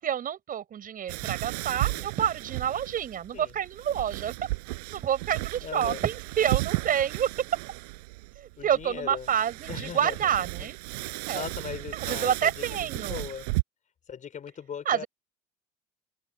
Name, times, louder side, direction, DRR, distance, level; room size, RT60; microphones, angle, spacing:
voice 1, 0.0-4.3 4.7-7.3 8.4-10.8 11.2-11.5 11.9-13.3 14.9-15.1, right 9 dB, 45° right, 7.0 m, -28 dB
sound 1, 1.1-13.6, right 25 dB, 85° right, 5.5 m, -34 dB
voice 2, 5.6-6.0 8.6-9.3 9.7-10.3 11.3-12.5 13.0-13.5 14.1-15.0, left 7 dB, 40° left, 5.4 m, -38 dB
open air
supercardioid pair, 90°, 20 cm